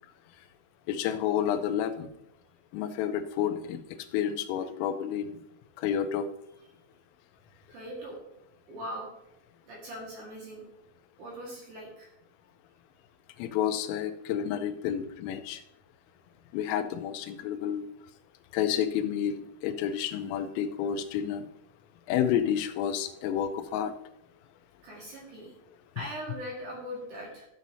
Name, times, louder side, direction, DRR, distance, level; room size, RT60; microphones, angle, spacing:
voice 1, 0.9-2.1 2.7-3.8 4.1-5.4 5.8-6.3 13.4-15.6 16.5-17.9 18.5-21.5 22.1-23.9, left 9 dB, 90° left, 9 dB, 3.4 m, -30 dB
voice 2, 7.7-8.2 8.7-9.1 9.6-10.6 11.2-12.1 24.8-25.5 26.0-27.5, equal, 55° right, -4 dB, 2.4 m, -40 dB
14.0 x 7.3 x 2.7 m, 0.86 s
omnidirectional pair, 5.8 m